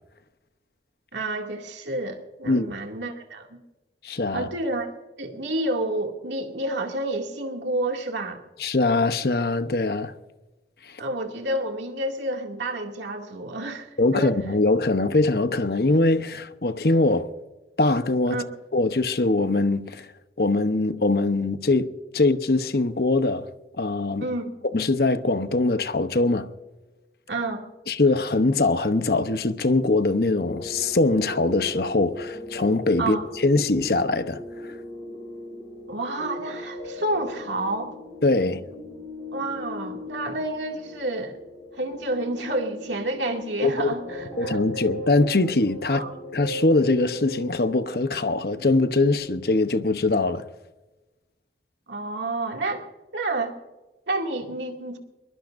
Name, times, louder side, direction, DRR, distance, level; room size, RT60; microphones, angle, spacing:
voice 1, 1.1-3.6 4.3-4.9 5.2-8.4 11.0-14.3 18.3-18.4 24.2-24.5 27.3-27.6 33.0-33.3 35.9-37.9 39.3-41.4 41.8-44.6 45.9-46.1 51.9-52.8 53.1-53.5 54.1-55.0, right 2 dB, 90° right, 2.4 m, -29 dB
voice 2, 4.0-4.5 8.6-10.1 14.0-17.3 17.8-18.4 18.7-20.1 20.4-23.5 23.8-24.3 24.7-26.5 27.9-34.4 38.2-38.6 43.6-43.9 44.4-46.1 46.3-50.4, left 2 dB, 60° left, 0.9 m, -22 dB
sound 1, 30.3-49.1, left 1 dB, 20° left, 7.1 m, -38 dB
22.5 x 22.0 x 2.6 m
head